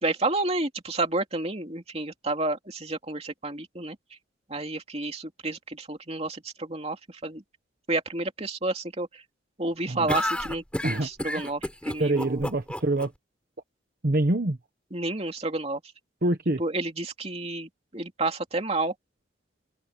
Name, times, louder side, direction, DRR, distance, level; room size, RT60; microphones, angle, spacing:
voice 1, 0.0-4.0 4.5-7.4 7.9-9.2 9.6-12.5 14.9-15.8 16.6-18.9, right 2 dB, 30° right, 2.8 m, -30 dB
sound 1, 10.1-13.1, left 1 dB, 5° left, 5.3 m, -30 dB
voice 2, 12.0-13.1 14.0-14.6 16.2-16.6, right 2 dB, 50° right, 1.1 m, -25 dB
head